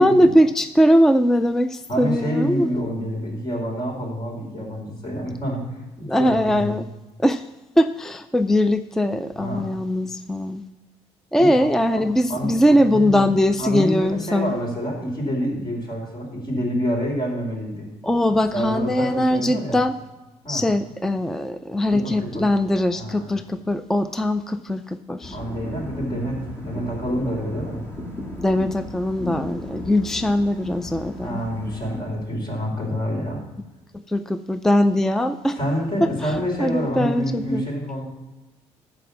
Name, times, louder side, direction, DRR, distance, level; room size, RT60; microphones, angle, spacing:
voice 1, 0.0-2.7 6.1-6.9 7.2-7.4 7.8-10.6 11.3-14.6 18.0-19.9 20.5-25.4 28.4-31.4 33.9-35.6 36.2-37.6, left 1 dB, 5° left, 11 dB, 0.3 m, -21 dB
voice 2, 1.9-6.7 9.4-9.7 11.4-13.3 13.6-17.9 18.5-19.8 20.4-20.7 21.9-22.4 22.9-23.3 25.3-27.8 31.2-33.4 35.6-38.0, equal, 35° left, -3 dB, 4.4 m, -27 dB
sound 1, 25.2-32.0, left 1 dB, 20° left, 2.2 m, -36 dB
13.5 x 4.9 x 7.1 m, 1.1 s
cardioid pair, 115°, 12 cm